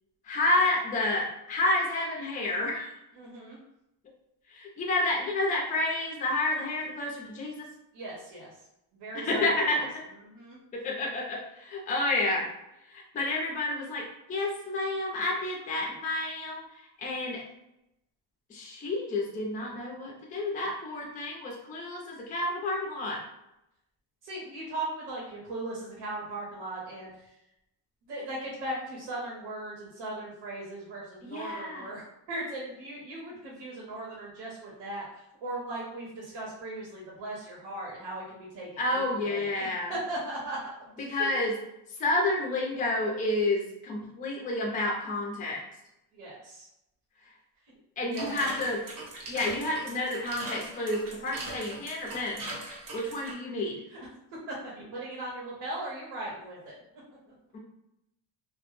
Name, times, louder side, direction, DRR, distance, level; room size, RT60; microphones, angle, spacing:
voice 1, 0.2-2.9 4.5-7.7 9.1-10.0 10.7-12.5 12.9-16.6 17.0-17.4 18.5-23.2 31.2-31.9 38.8-39.9 41.0-41.5 42.0-45.6 48.0-48.8 49.3-52.4 52.9-53.8 57.5-57.6, left 2 dB, 20° left, -2 dB, 0.4 m, -30 dB
voice 2, 3.2-3.6 7.9-8.5 9.0-9.9 10.2-10.6 24.2-27.3 28.1-41.3 46.1-46.7 48.1-48.7 53.9-54.0 54.5-56.7, right 2 dB, 85° right, -4 dB, 0.9 m, -38 dB
sound 1, 48.1-53.3, right 2 dB, 50° right, 0.7 m, -40 dB
2.1 x 2.0 x 2.9 m, 0.86 s
cardioid pair, 160°, 44 cm